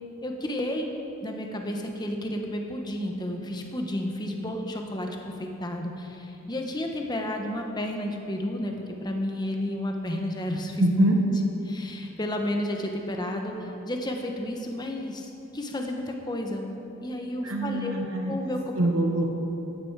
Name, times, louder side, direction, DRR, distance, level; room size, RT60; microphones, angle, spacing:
voice 1, 0.2-0.9 1.2-8.7 9.0-10.9 11.3-16.7 17.0-18.0 18.3-18.9, left 1 dB, 20° left, 2 dB, 1.0 m, -32 dB
voice 2, 10.8-11.2 17.4-18.3 18.8-19.3, right 1 dB, 85° right, 1 dB, 1.1 m, -24 dB
13.5 x 10.0 x 4.7 m, 2.9 s
head